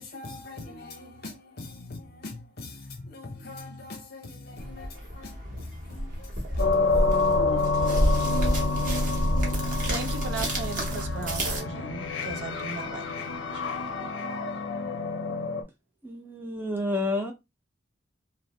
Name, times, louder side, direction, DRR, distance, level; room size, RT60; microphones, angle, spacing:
voice 1, 0.0-8.9, left 2 dB, 55° left, 0.8 m, -44 dB
sound 1, 4.6-11.6, equal, 45° right, 0.8 m, -29 dB
sound 2, 6.6-15.6, left 3 dB, 80° left, 0.5 m, -28 dB
voice 2, 9.9-13.6, right 4 dB, 70° right, 0.5 m, -37 dB
voice 3, 16.0-17.3, left 2 dB, 10° right, 0.5 m, -29 dB
2.7 x 2.0 x 2.8 m
head